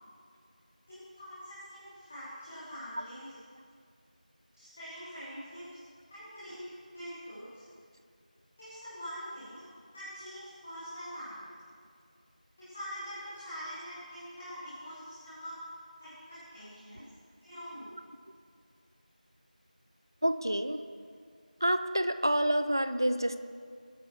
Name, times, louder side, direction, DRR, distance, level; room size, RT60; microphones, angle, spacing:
voice 1, 0.9-3.3 4.5-5.8 6.1-6.6 6.9-7.6 8.6-9.6 9.9-11.5 12.6-15.6 16.0-17.0 17.4-17.9, equal, 5° left, -13 dB, 1.0 m, -44 dB
voice 2, 20.2-20.8 21.6-23.4, equal, 30° right, 10 dB, 0.5 m, -28 dB
21.5 x 13.0 x 4.7 m, 2.2 s
figure-of-eight pair, 175°, 5 cm